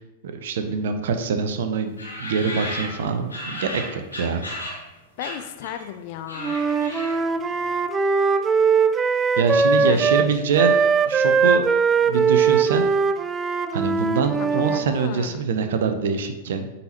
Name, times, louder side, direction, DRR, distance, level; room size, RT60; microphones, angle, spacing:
voice 1, 0.2-4.4 9.4-10.8 11.0-11.6 11.9-12.9 13.7-16.7, right 5 dB, 60° right, 8 dB, 0.6 m, -24 dB
sound 1, 2.0-4.9 5.2-5.9 6.2-7.4, left 1 dB, 80° left, 1.9 m, -34 dB
voice 2, 5.2-6.6 9.8-10.3 14.4-15.5, left 11 dB, 45° left, 10 dB, 0.5 m, -35 dB
Wind instrument woodwind instrument, 6.4-10.3 10.5-14.9, right 5 dB, 20° right, 0.3 m, -20 dB
9.2 x 4.2 x 2.9 m, 1.0 s
figure-of-eight pair, 95°, 0 cm